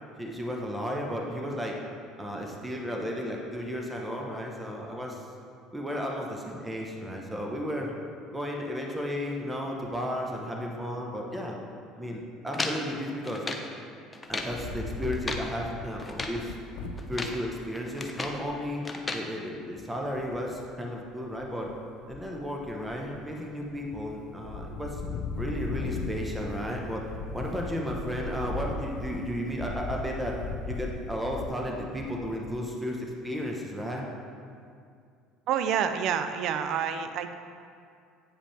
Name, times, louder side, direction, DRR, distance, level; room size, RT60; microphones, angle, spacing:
voice 1, 0.2-1.8 2.2-5.2 5.7-7.9 8.3-11.6 12.0-13.4 14.3-16.5 17.1-18.8 19.1-21.7 22.1-25.0 25.4-27.0 27.3-30.4 30.7-34.1, equal, 10° right, -1 dB, 1.1 m, -34 dB
sound 1, 12.5-13.7 14.1-14.6 15.0-15.5 16.0-16.4 17.0-17.4 17.7-18.4 18.9-19.3, left 2 dB, 20° left, 0.7 m, -35 dB
Wind, 14.4-17.4 18.0-18.1 18.2-18.6 20.1-20.7 21.2-21.7 22.0-23.2 23.6-24.1 24.4-32.6, left 3 dB, 75° left, 0.6 m, -38 dB
voice 2, 35.5-37.3, right 8 dB, 60° right, 9 dB, 0.5 m, -28 dB
8.8 x 5.0 x 3.4 m, 2.3 s
hypercardioid pair, 75°, 0 cm